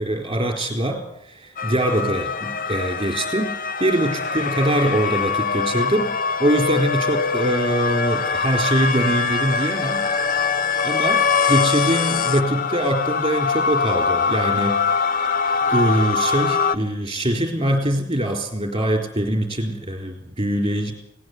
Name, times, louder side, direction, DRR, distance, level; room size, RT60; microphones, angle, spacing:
voice 1, 0.0-3.5 3.8-6.1 6.4-10.0 10.8-14.8 15.7-20.9, right 1 dB, 25° right, 5 dB, 4.1 m, -23 dB
sound 1, 1.6-16.8, left 5 dB, 50° left, 0.8 m, -23 dB
18.5 x 18.0 x 8.0 m, 0.80 s
head